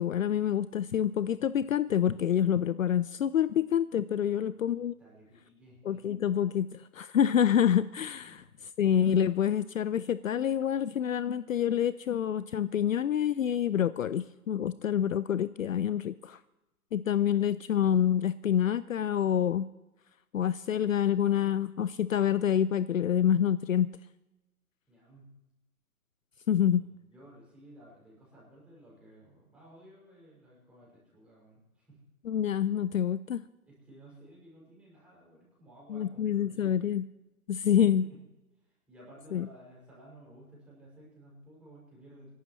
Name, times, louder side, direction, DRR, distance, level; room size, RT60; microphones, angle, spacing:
voice 1, 0.0-4.9 5.9-8.4 8.8-16.4 16.9-19.7 20.3-23.9 26.5-26.8 32.3-33.4 35.9-37.0 37.5-38.0 39.3-39.5, left 9 dB, 65° left, 16 dB, 0.6 m, -27 dB
voice 2, 4.2-6.3 8.2-8.5 24.9-25.3 26.4-32.0 33.6-36.8 37.7-38.2 38.6-42.3, right 1 dB, 5° right, -6 dB, 5.8 m, -55 dB
26.5 x 12.0 x 3.1 m, 1.0 s
hypercardioid pair, 150°, 44 cm